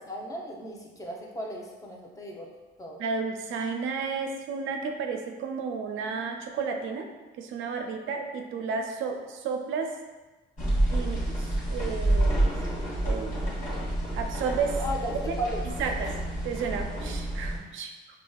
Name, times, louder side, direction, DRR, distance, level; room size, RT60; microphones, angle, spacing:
voice 1, 0.1-2.5 2.8-3.0 14.8-15.6, equal, 15° left, -1 dB, 0.7 m, -35 dB
voice 2, 3.0-7.1 7.4-10.0 10.9-12.7 13.0-13.8 14.1-14.8 15.3-15.4 15.8-16.1 16.4-17.9, right 5 dB, 85° right, 4 dB, 0.4 m, -32 dB
sound 1, 10.6-17.6, right 1 dB, 40° left, 1.2 m, -28 dB
4.8 x 2.3 x 2.3 m, 1.2 s
cardioid pair, 90°, 20 cm